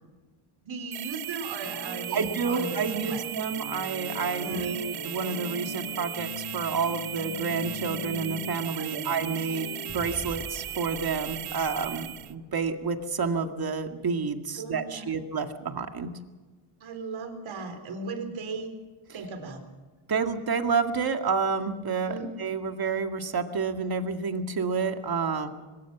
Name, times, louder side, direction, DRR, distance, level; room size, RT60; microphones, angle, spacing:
voice 1, 0.6-2.8 3.1-3.3 4.4-4.8 8.8-9.1 14.6-15.1 16.8-18.7 19.1-19.6 22.0-22.3, right 4 dB, 65° right, 7 dB, 4.0 m, -37 dB
sound 1, 0.9-12.3, right 13 dB, 80° right, 1.0 m, -37 dB
sound 2, 1.6-9.9, left 3 dB, 80° left, 8.0 m, -40 dB
voice 2, 2.1-16.1 20.1-25.5, right 5 dB, 45° right, 6 dB, 2.1 m, -29 dB
sound 3, 9.9-14.0, right 1 dB, 5° right, 2.5 m, -47 dB
22.5 x 21.0 x 6.1 m, 1.3 s
cardioid pair, 105°, 50 cm